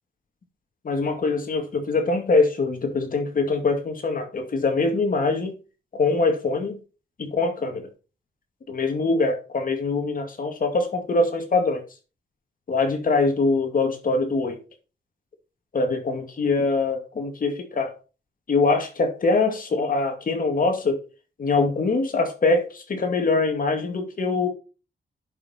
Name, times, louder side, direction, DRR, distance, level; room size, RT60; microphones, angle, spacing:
voice 1, 0.8-5.6 5.9-6.8 7.2-7.9 8.7-11.8 12.7-14.6 15.7-17.9 18.5-21.0 21.4-24.5, left 3 dB, 45° left, 2.2 m, -23 dB
10.5 x 5.7 x 4.3 m
wide cardioid pair, 175°, 19 cm